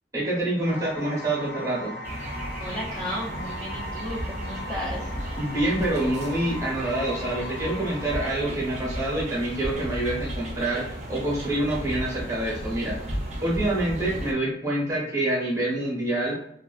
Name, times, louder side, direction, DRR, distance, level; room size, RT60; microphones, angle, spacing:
voice 1, 0.1-2.0 5.4-13.0 13.4-16.4, right 1 dB, 20° right, -5 dB, 0.9 m, -26 dB
sound 1, 0.6-8.2, left 1 dB, 80° left, 0.6 m, -39 dB
sound 2, 2.0-14.3, right 1 dB, 40° right, 0.5 m, -34 dB
voice 2, 2.6-5.2, equal, 15° left, -9 dB, 0.5 m, -34 dB
2.3 x 2.3 x 2.4 m, 0.71 s
head